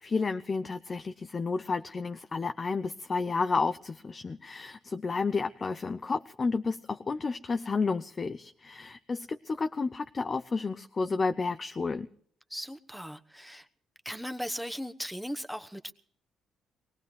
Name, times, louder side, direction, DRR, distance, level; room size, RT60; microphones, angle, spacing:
voice 1, 0.0-12.1, left 4 dB, 35° left, 9 dB, 0.6 m, -31 dB
voice 2, 12.5-13.7 14.0-15.9, equal, ahead, 8 dB, 1.1 m, -38 dB
23.0 x 18.5 x 3.2 m, 0.63 s
cardioid pair, 90°, 0 cm